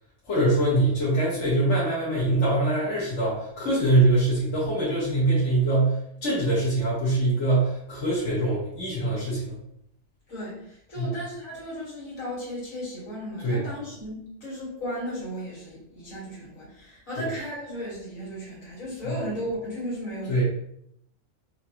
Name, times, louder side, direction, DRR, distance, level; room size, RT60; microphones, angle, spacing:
voice 1, 0.3-6.0 6.2-9.6 11.0-11.1 13.4-13.6 17.2-17.3 19.0-19.1 20.3-20.4, right 2 dB, 60° left, -7 dB, 1.6 m, -23 dB
voice 2, 10.3-20.4, equal, 80° left, -6 dB, 2.1 m, -35 dB
5.5 x 2.4 x 2.8 m, 0.74 s
omnidirectional pair, 1.4 m